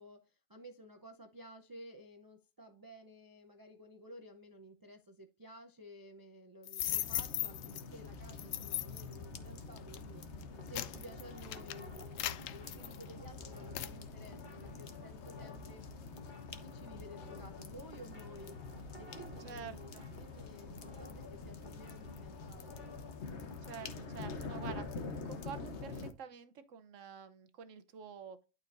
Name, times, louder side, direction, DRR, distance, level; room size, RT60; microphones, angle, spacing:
voice 1, 0.0-15.8 16.3-18.6 19.0-22.9, equal, 25° right, 0.4 m, -54 dB
sound 1, 6.6-7.8 8.4-9.1 9.8-10.0 10.4-13.3 13.7-14.0, left 13 dB, 85° left, 1.0 m, -38 dB
sound 2, 6.9-26.1, left 4 dB, 65° left, 1.2 m, -47 dB
sound 3, 10.3-25.0, left 2 dB, 40° left, 1.8 m, -54 dB
voice 2, 19.4-20.0 23.6-24.9 25.2-28.4, right 7 dB, 80° right, 1.1 m, -48 dB
11.5 x 4.5 x 2.5 m
omnidirectional pair, 1.3 m